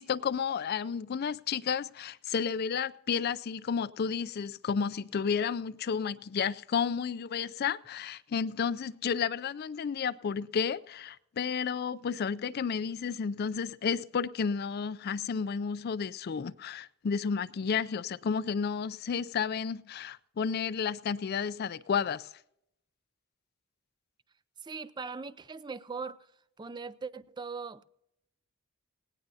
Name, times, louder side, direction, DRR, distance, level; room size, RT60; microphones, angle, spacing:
voice 1, 0.0-22.3, left 6 dB, 50° left, 0.4 m, -32 dB
voice 2, 24.6-26.3 26.6-27.8, right 4 dB, 20° right, 0.4 m, -40 dB
18.5 x 18.0 x 2.7 m
head